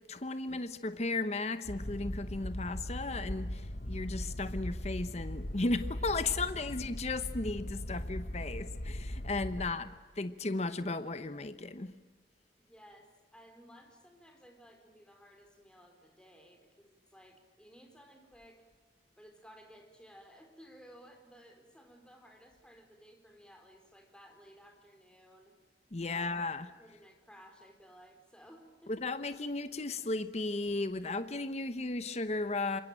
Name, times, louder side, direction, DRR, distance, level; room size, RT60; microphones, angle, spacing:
voice 1, 0.1-9.9 10.2-11.9 25.9-26.7 28.9-32.8, left 3 dB, 40° left, 11 dB, 0.9 m, -35 dB
sound 1, 1.7-9.7, left 1 dB, 55° left, 1.5 m, -39 dB
voice 2, 12.6-18.6 19.2-25.5 26.1-26.4 26.8-28.9, equal, 5° left, 4 dB, 4.5 m, -57 dB
27.5 x 22.5 x 9.0 m, 1.4 s
head